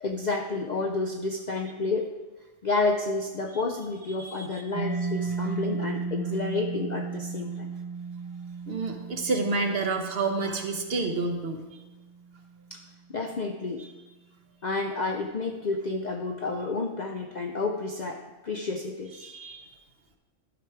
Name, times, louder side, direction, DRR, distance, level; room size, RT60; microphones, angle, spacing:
voice 1, 0.0-2.1 2.6-7.7 12.7-13.9 14.6-19.3, left 3 dB, 55° left, 3 dB, 0.5 m, -30 dB
voice 2, 4.2-4.6 8.7-11.8 19.2-19.7, right 3 dB, 55° right, 4 dB, 1.0 m, -29 dB
Mallet percussion, 4.7-12.2, right 5 dB, 25° right, 0.6 m, -35 dB
12.0 x 4.6 x 4.7 m, 1.1 s
omnidirectional pair, 1.3 m